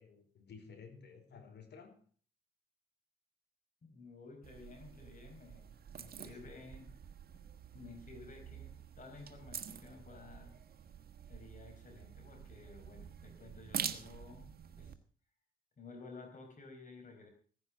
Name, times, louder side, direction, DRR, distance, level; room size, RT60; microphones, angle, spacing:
voice 1, 0.0-2.1 6.2-6.5, left 5 dB, 60° left, 4.6 m, -54 dB
voice 2, 3.8-6.9 7.3-7.4 7.7-10.6 11.3-14.5 14.8-14.9 15.8-17.3, left 3 dB, 40° left, 4.7 m, -53 dB
sound 1, 4.4-14.9, right 8 dB, 50° right, 1.5 m, -47 dB
16.5 x 9.9 x 6.4 m
cardioid pair, 90°, 20 cm